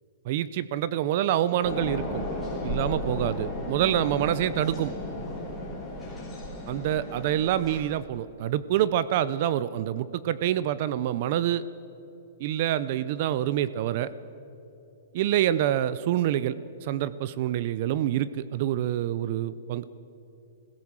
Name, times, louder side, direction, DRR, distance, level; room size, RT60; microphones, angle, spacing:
voice 1, 0.3-2.2 2.6-4.9 6.7-11.6 12.4-14.1 15.1-16.6 16.8-19.9, right 11 dB, 35° right, 16 dB, 0.5 m, -26 dB
sound 1, 1.6-7.8, left 1 dB, 5° left, 3.7 m, -34 dB
21.0 x 16.5 x 7.4 m, 2.9 s
hypercardioid pair, 180°, 0 cm